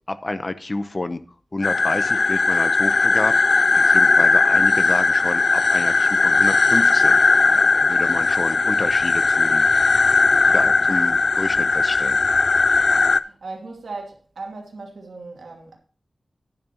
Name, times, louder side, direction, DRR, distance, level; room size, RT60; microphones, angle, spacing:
voice 1, 0.1-1.2 1.5-3.6 3.9-7.2 7.9-9.7 10.2-12.2, left 2 dB, 35° left, 0.8 m, -29 dB
sound 1, 1.6-13.2, left 4 dB, 65° left, 0.4 m, -18 dB
voice 2, 7.5-8.0 12.8-15.8, right 3 dB, 85° right, 2.7 m, -38 dB
10.5 x 10.5 x 2.9 m
wide cardioid pair, 95°, 0 cm